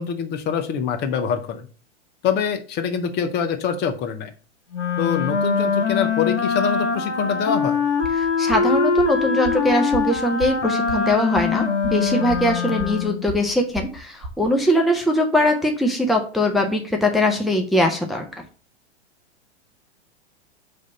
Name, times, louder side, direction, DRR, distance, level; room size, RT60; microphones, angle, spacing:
voice 1, 0.0-1.7 2.2-4.3 5.0-7.8, left 7 dB, 30° left, 8 dB, 0.8 m, -24 dB
Wind instrument woodwind instrument, 4.7-13.3, left 5 dB, 85° left, 1.2 m, -23 dB
sound 1, 8.0-14.6, equal, 25° right, 1.9 m, -36 dB
voice 2, 8.4-18.2, left 1 dB, ahead, 2 dB, 0.7 m, -21 dB
5.0 x 3.4 x 5.5 m, 0.38 s
hypercardioid pair, 105°, 34 cm